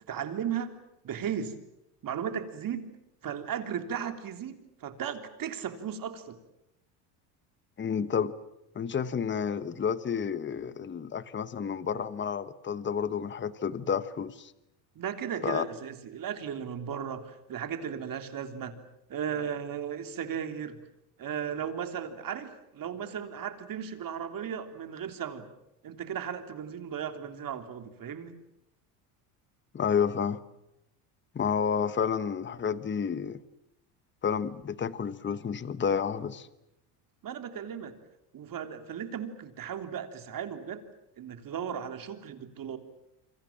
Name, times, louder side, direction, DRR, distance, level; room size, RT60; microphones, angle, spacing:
voice 1, 0.1-0.8 1.0-1.6 2.0-2.9 3.2-6.4 14.9-18.7 19.1-20.8 21.2-25.5 25.8-28.4 37.2-37.9 38.3-40.8 41.2-42.8, right 8 dB, 40° right, 7 dB, 3.5 m, -36 dB
voice 2, 7.8-8.3 8.7-14.5 15.4-15.6 29.7-30.4 31.3-33.4 34.2-36.5, left 7 dB, 25° left, 14 dB, 1.2 m, -30 dB
28.5 x 25.5 x 7.5 m, 0.86 s
cardioid pair, 115°, 49 cm